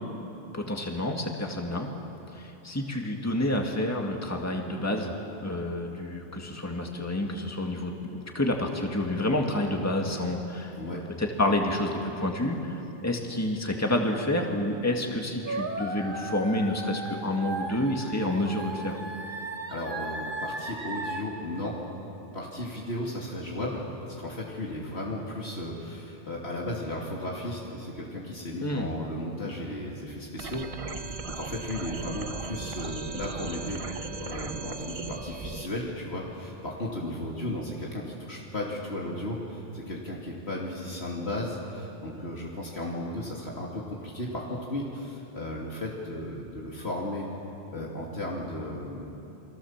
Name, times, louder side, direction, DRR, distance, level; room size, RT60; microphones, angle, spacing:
voice 1, 0.5-1.9 2.3-5.2 5.4-19.0 28.6-28.9, left 1 dB, 15° left, 1 dB, 2.0 m, -29 dB
sound 1, 15.5-21.2, right 2 dB, 50° right, 1.9 m, -36 dB
voice 2, 19.7-21.7 22.3-23.8 24.2-30.6 31.0-33.8 34.2-47.3 47.7-49.2, left 1 dB, 70° left, -4 dB, 3.0 m, -35 dB
sound 2, 30.4-35.7, right 4 dB, 35° right, 0.9 m, -37 dB
29.5 x 23.5 x 7.4 m, 2.9 s
omnidirectional pair, 1.1 m